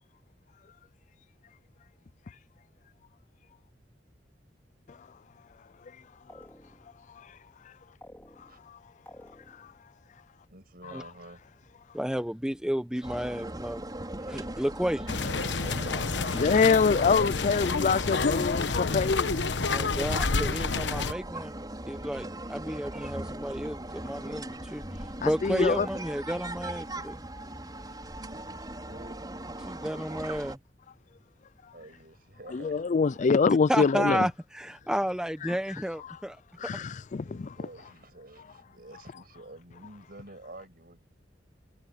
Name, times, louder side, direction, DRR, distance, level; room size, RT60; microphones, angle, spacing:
sound 1, 6.3-7.0 8.0-8.7 9.1-9.8 13.1-13.9 14.8-15.6 15.9-16.6, left 1 dB, 10° left, 3.8 m, -52 dB
voice 1, 10.5-11.4 15.3-16.5 27.9-29.2 31.7-32.9 36.7-36.8 37.2-41.0, right 2 dB, 55° right, 6.7 m, -50 dB
voice 2, 11.9-13.8 14.3-15.0 19.7-21.5 21.9-24.8 25.2-27.2 29.6-30.6 33.7-36.4 36.7-36.8, equal, 5° right, 0.9 m, -31 dB
sound 2, 13.0-30.6, right 1 dB, 25° right, 5.4 m, -39 dB
sound 3, 15.1-21.1, left 4 dB, 80° left, 1.0 m, -28 dB
voice 3, 16.4-19.3 25.2-25.9 32.5-34.3 36.6-37.5, left 5 dB, 45° left, 0.4 m, -25 dB
head